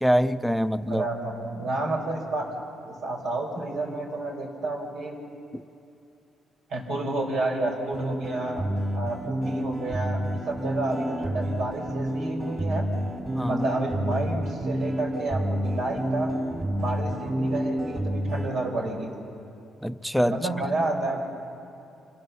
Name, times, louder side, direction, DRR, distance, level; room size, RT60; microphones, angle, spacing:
voice 1, 0.0-1.0 5.5-5.6 13.3-13.6 19.8-20.4, equal, ahead, 14 dB, 0.6 m, -24 dB
voice 2, 0.8-5.2 6.7-8.6 8.9-12.9 13.4-16.3 16.8-19.2 20.3-21.2, right 2 dB, 75° right, 2 dB, 4.9 m, -30 dB
sound 1, 7.9-18.5, equal, 30° right, 4.3 m, -29 dB
27.0 x 18.5 x 7.0 m, 2.7 s
cardioid pair, 90°, 0 cm